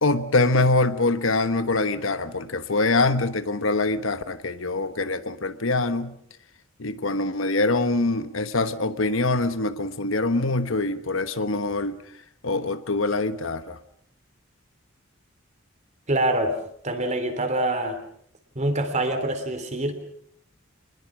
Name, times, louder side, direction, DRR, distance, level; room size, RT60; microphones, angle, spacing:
voice 1, 0.0-6.2 6.8-12.0 12.4-13.8, left 2 dB, 70° left, 11 dB, 1.3 m, -24 dB
voice 2, 16.1-16.6 16.8-18.0 18.5-19.9, right 1 dB, 35° right, 8 dB, 3.3 m, -25 dB
25.5 x 21.0 x 6.2 m, 0.68 s
head